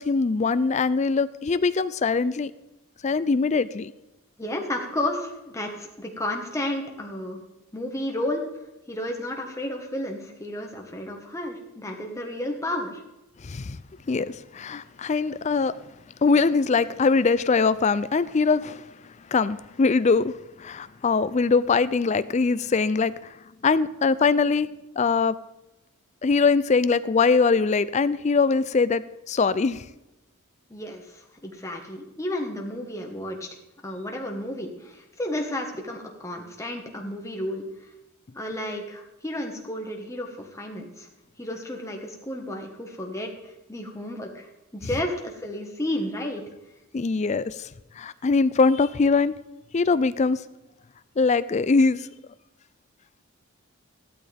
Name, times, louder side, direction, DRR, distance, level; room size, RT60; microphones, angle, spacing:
voice 1, 0.0-2.5 3.0-3.9 13.4-13.8 14.1-15.7 16.2-18.8 19.3-23.1 23.6-24.7 25.0-25.3 26.2-29.8 46.9-47.7 48.0-49.4 49.7-50.4 51.2-52.1, left 4 dB, 30° left, 15 dB, 0.4 m, -22 dB
voice 2, 4.4-7.4 7.7-8.5 8.9-13.0 30.7-33.5 33.8-37.6 38.3-41.1 41.4-46.4, left 1 dB, 15° left, 1 dB, 1.4 m, -32 dB
15.0 x 12.5 x 3.5 m, 0.98 s
head